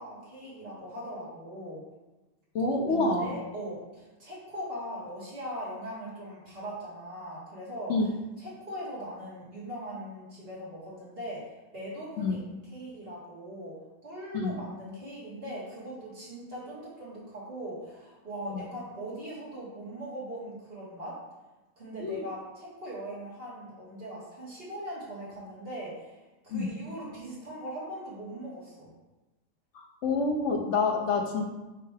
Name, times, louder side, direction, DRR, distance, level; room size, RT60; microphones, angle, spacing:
voice 1, 0.0-1.8 2.9-7.9 8.4-11.4 11.7-21.2 21.8-26.2 26.4-28.9, right 1 dB, 30° right, -8 dB, 2.3 m, -40 dB
voice 2, 2.5-3.4 7.9-8.1 12.2-12.4 14.3-14.6 18.5-18.6 22.0-22.2 26.5-26.7 29.7-31.5, left 3 dB, 65° left, 2 dB, 0.7 m, -27 dB
8.9 x 3.3 x 3.4 m, 1.1 s
omnidirectional pair, 2.0 m